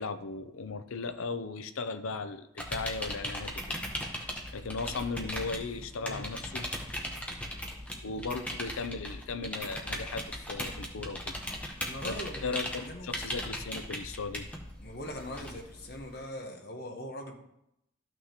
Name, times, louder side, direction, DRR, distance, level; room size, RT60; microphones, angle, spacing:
voice 1, 0.0-3.5 4.0-4.1 4.5-6.9 7.9-11.7 12.0-12.2 12.4-14.5, left 4 dB, 75° left, 10 dB, 0.6 m, -37 dB
sound 1, 2.6-16.2, equal, 5° left, 0.9 m, -38 dB
voice 2, 11.8-12.6 12.8-13.1 14.8-17.4, equal, 50° left, 3 dB, 1.1 m, -41 dB
13.0 x 6.1 x 2.9 m, 0.82 s
head